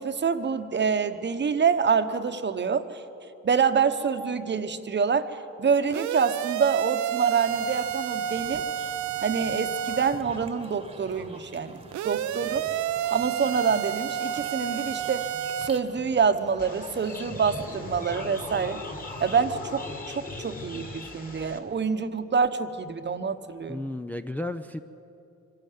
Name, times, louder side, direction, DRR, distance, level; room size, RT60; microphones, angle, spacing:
voice 1, 0.0-3.0 3.4-8.6 9.2-12.7 13.1-15.3 15.6-18.8 19.2-23.8, right 6 dB, 35° right, 9 dB, 1.0 m, -26 dB
sound 1, 5.9-10.2 11.9-15.7, right 10 dB, 70° right, 0.6 m, -30 dB
sound 2, 7.4-19.4, right 2 dB, 20° right, 1.3 m, -46 dB
sound 3, 16.6-21.6, left 2 dB, 30° left, 2.4 m, -39 dB
voice 2, 23.7-24.8, left 1 dB, 5° left, 6 dB, 0.5 m, -33 dB
24.5 x 12.5 x 9.3 m, 2.8 s
cardioid pair, 90°, 30 cm